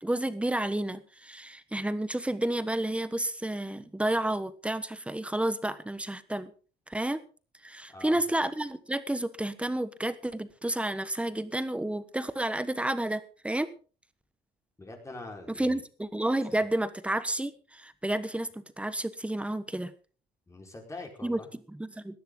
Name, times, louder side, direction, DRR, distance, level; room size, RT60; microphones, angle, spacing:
voice 1, 0.0-6.5 6.9-7.2 7.6-13.7 15.5-19.9 21.2-22.2, right 1 dB, 5° right, 14 dB, 1.2 m, -31 dB
voice 2, 7.9-8.2 14.8-15.8 20.5-21.5, left 2 dB, 15° left, 2 dB, 4.7 m, -43 dB
18.0 x 12.5 x 3.9 m, 0.38 s
cardioid pair, 110°, 17 cm